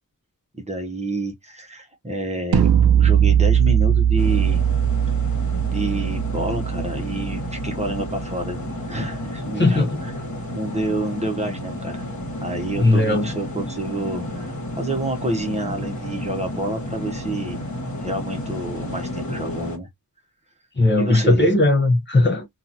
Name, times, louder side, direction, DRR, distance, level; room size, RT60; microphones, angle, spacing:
voice 1, 0.5-4.6 5.6-8.6 8.9-9.8 10.5-12.0 12.4-17.6 18.0-19.9 21.0-21.4, right 1 dB, 20° right, 0.9 m, -28 dB
sound 1, 2.5-8.5, right 9 dB, 90° right, 0.6 m, -20 dB
sound 2, 4.2-19.8, left 1 dB, 55° left, 1.4 m, -31 dB
voice 2, 9.6-10.0 12.8-13.3 20.8-22.5, left 2 dB, 30° left, 0.8 m, -18 dB
2.9 x 2.4 x 2.6 m
wide cardioid pair, 100°, 35 cm